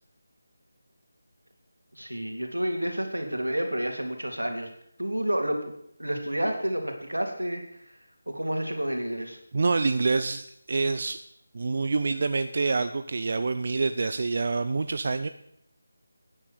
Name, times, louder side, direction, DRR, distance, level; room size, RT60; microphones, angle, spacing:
voice 1, 1.9-4.7 5.0-5.6 6.0-7.6 8.3-9.4, right 1 dB, 85° right, 4 dB, 3.3 m, -29 dB
voice 2, 9.5-11.2 11.5-15.3, right 3 dB, 45° right, 11 dB, 0.6 m, -26 dB
13.5 x 9.9 x 6.6 m, 0.73 s
figure-of-eight pair, 160°, 0 cm